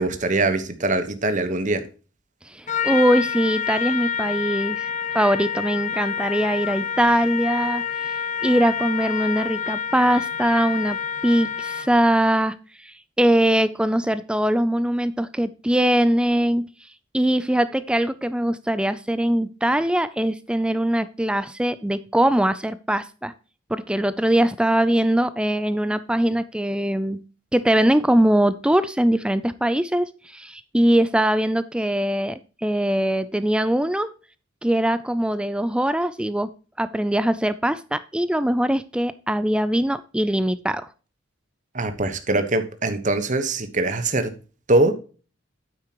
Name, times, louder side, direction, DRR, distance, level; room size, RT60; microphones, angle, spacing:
voice 1, 0.0-1.9 41.7-44.3 44.7-44.9, right 2 dB, 35° right, 1.2 m, -22 dB
voice 2, 2.5-7.8 8.4-12.5 12.8-16.7 17.1-23.3 23.7-27.2 27.5-34.1 34.6-36.5 36.8-40.9, right 1 dB, 5° right, 0.4 m, -22 dB
Trumpet, 2.7-12.0, left 7 dB, 35° left, 0.6 m, -28 dB
9.5 x 8.0 x 3.0 m
head